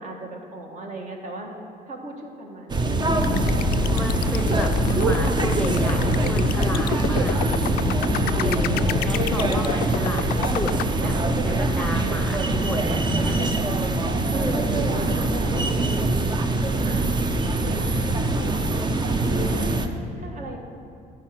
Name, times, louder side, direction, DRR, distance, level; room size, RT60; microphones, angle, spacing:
voice 1, 0.0-1.5 1.9-4.0 4.5-5.0 7.1-9.2 11.7-11.9 13.2-13.7 14.5-16.4 16.6-17.1 17.6-18.6 19.2-20.6, right 1 dB, 45° right, 1 dB, 1.6 m, -36 dB
sound 1, 2.7-19.9, right 2 dB, 25° right, 0.7 m, -23 dB
sound 2, 3.2-10.9, left 12 dB, 65° left, 0.4 m, -28 dB
voice 2, 3.9-4.7 5.0-7.4 8.4-13.4 14.3-14.7, left 2 dB, 5° left, 3 dB, 0.8 m, -32 dB
12.0 x 4.6 x 7.6 m, 2.4 s
cardioid pair, 110°, 17 cm